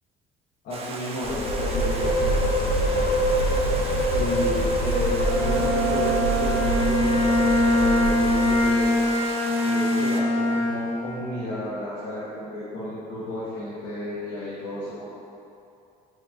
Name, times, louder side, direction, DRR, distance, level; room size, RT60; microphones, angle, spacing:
voice 1, 0.6-2.1 4.1-8.9 9.6-15.1, left 1 dB, 85° left, -12 dB, 1.0 m, -32 dB
Stream, 0.7-10.2, right 3 dB, 35° right, 0.4 m, -37 dB
sound 1, 1.2-9.1, equal, 55° left, 0.4 m, -25 dB
Bowed string instrument, 5.1-11.2, left 1 dB, 35° left, 1.2 m, -23 dB
4.8 x 3.0 x 2.3 m, 2.6 s
cardioid pair, 110°, 17 cm